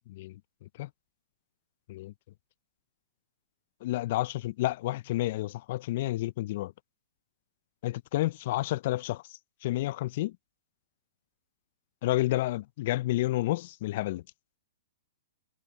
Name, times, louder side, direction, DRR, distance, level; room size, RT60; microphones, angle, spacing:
voice 1, 0.1-0.9 1.9-2.1 3.8-6.7 7.8-9.2 9.6-10.4 12.0-14.2, left 16 dB, 55° left, 0.5 m, -30 dB
hypercardioid pair, 120°, 0 cm